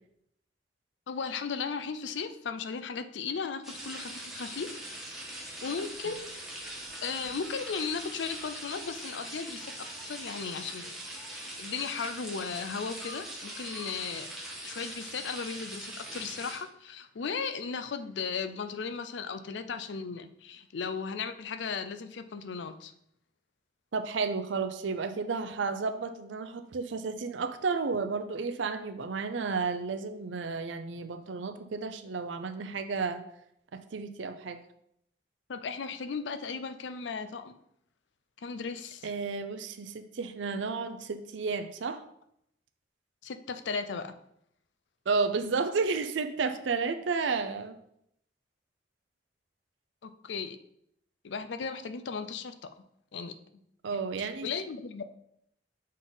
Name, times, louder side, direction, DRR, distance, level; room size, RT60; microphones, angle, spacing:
voice 1, 1.1-4.8 5.6-6.3 7.0-14.3 14.6-22.9 35.5-37.5 38.4-39.1 43.2-44.1 50.0-50.6 51.2-52.5 53.1-53.3 54.2-55.0, left 5 dB, 75° left, 10 dB, 0.5 m, -36 dB
sound 1, 3.6-16.6, right 1 dB, ahead, 1.5 m, -42 dB
voice 2, 23.9-33.2 33.7-34.6 39.0-42.0 45.1-47.8 53.8-54.5, right 4 dB, 90° right, 9 dB, 0.5 m, -32 dB
6.4 x 3.9 x 3.9 m, 0.74 s
head